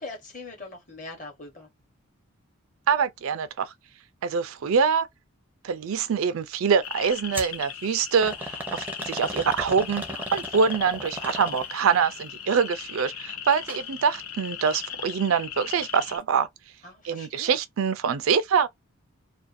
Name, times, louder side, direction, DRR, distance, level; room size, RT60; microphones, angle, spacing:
voice 1, 0.0-1.7 16.8-17.6, left 3 dB, 35° left, 1.0 m, -41 dB
voice 2, 2.9-3.7 4.2-5.1 5.6-16.5 17.0-18.7, right 6 dB, 70° right, 0.4 m, -25 dB
sound 1, 6.8-16.2, left 9 dB, 75° left, 0.6 m, -38 dB
sound 2, 7.3-7.6 8.2-11.9 13.5-13.8 14.2-14.3 15.1-15.2, right 1 dB, 10° right, 0.5 m, -36 dB
2.4 x 2.2 x 2.5 m
head